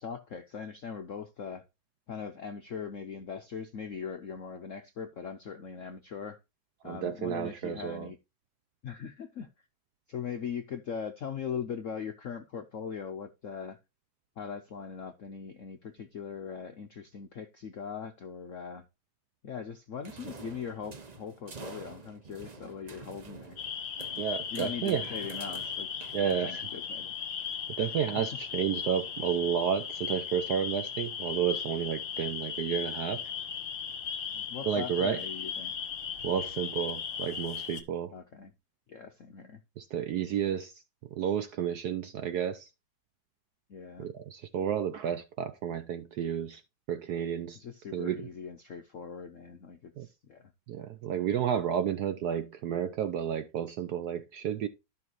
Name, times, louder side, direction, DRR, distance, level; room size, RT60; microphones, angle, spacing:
voice 1, 0.0-1.6 2.1-6.4 6.8-8.2 8.8-9.5 10.1-13.8 14.4-18.9 19.4-23.6 24.5-27.1 28.1-28.2 34.3-35.7 38.1-38.5 38.9-39.6 43.7-44.1 47.5-50.5, left 6 dB, 70° left, 0.7 m, -40 dB
voice 2, 6.8-8.1 24.2-25.2 26.1-26.6 27.8-33.3 34.6-35.2 36.2-38.1 39.8-40.8 41.1-42.7 44.0-46.6 46.9-47.6 47.9-48.2 50.0-50.1 50.7-54.7, right 9 dB, 75° right, 0.9 m, -31 dB
sound 1, 20.0-26.8, right 4 dB, 55° right, 0.4 m, -48 dB
sound 2, 23.6-37.8, left 7 dB, 45° left, 1.4 m, -37 dB
12.5 x 5.9 x 3.0 m
omnidirectional pair, 2.3 m